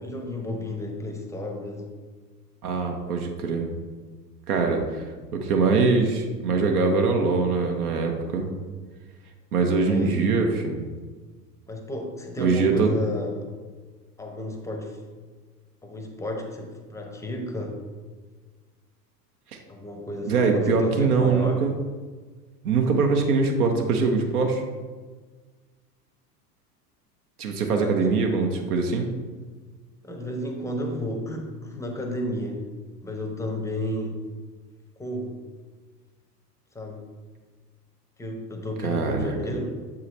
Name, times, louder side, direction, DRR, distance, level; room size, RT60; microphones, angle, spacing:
voice 1, 0.0-1.9 9.8-10.2 11.7-13.3 14.2-15.0 15.8-17.8 19.7-21.6 27.8-27.9 30.0-32.6 33.0-34.2 35.0-35.4 36.7-37.0 38.2-39.8, left 1 dB, 5° left, 2 dB, 0.7 m, -32 dB
voice 2, 2.6-3.7 4.5-5.0 5.3-8.5 9.5-10.8 12.4-12.9 19.5-19.6 20.3-21.7 22.6-24.6 27.4-29.1 38.8-39.6, right 4 dB, 65° right, 3 dB, 0.9 m, -23 dB
7.2 x 4.8 x 3.2 m, 1.4 s
figure-of-eight pair, 90°, 49 cm